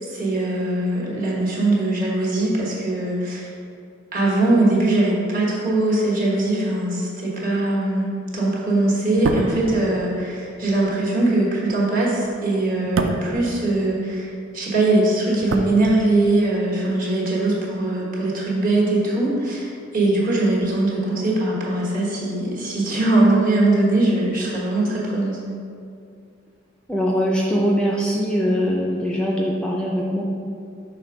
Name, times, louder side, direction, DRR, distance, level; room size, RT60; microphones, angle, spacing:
voice 1, 0.1-3.5 4.1-25.4, right 2 dB, 45° right, -4 dB, 1.3 m, -21 dB
sound 1, 9.1-14.4 14.6-16.5 16.7-16.9, right 3 dB, 80° right, 0.4 m, -29 dB
voice 2, 26.9-30.2, equal, 5° left, -3 dB, 0.4 m, -22 dB
6.0 x 3.4 x 5.0 m, 2.4 s
head